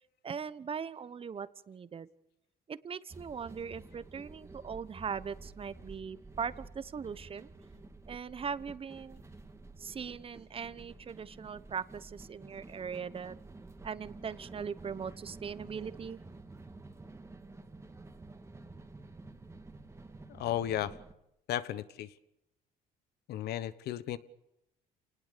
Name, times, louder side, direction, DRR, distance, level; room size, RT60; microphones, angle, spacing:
voice 1, 0.2-2.1 2.7-7.5 8.1-9.2 9.8-13.4 13.8-16.2, right 6 dB, 35° right, 15 dB, 1.1 m, -40 dB
sound 1, 3.1-21.1, right 2 dB, 15° right, 2.0 m, -51 dB
voice 2, 20.3-21.0 21.5-22.1 23.3-24.2, left 12 dB, 75° left, 15 dB, 1.2 m, -34 dB
28.5 x 19.5 x 6.9 m, 0.85 s
cardioid pair, 110°, 17 cm